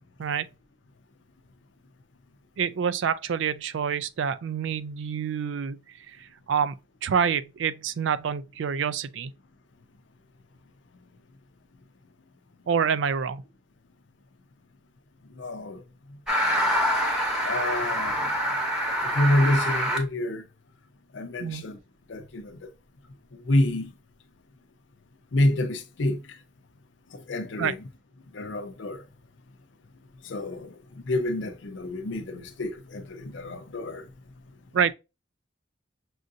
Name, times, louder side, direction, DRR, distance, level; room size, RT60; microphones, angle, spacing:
voice 1, 2.6-5.8 6.1-6.7 7.0-9.3 12.7-13.4 21.4-21.7 27.6-27.7 34.7-34.9, right 7 dB, 75° right, 0.4 m, -27 dB
voice 2, 15.4-15.8 17.4-18.4 19.1-20.5 21.1-21.8 22.1-22.7 23.3-23.9 25.3-26.2 27.1-27.8 28.3-29.0 30.2-30.8 31.1-34.0, left 1 dB, 80° left, 0.6 m, -28 dB
sound 1, 16.3-20.0, equal, 5° right, 0.9 m, -25 dB
6.2 x 2.6 x 2.6 m
head